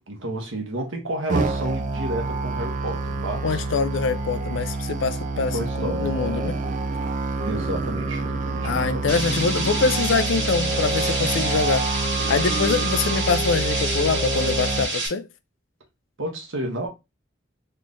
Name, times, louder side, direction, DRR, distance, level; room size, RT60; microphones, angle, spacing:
voice 1, 0.1-3.6 5.5-6.2 7.4-9.3 11.5-11.7 12.9-13.0 16.2-16.9, right 1 dB, 90° right, 1.2 m, -31 dB
Musical instrument, 1.3-14.8, right 3 dB, 40° right, 0.4 m, -27 dB
voice 2, 3.4-6.6 8.6-11.9 12.3-15.3, left 5 dB, 75° left, 0.4 m, -24 dB
sound 1, 9.1-15.1, right 2 dB, 70° right, 1.8 m, -28 dB
3.6 x 3.2 x 2.5 m
head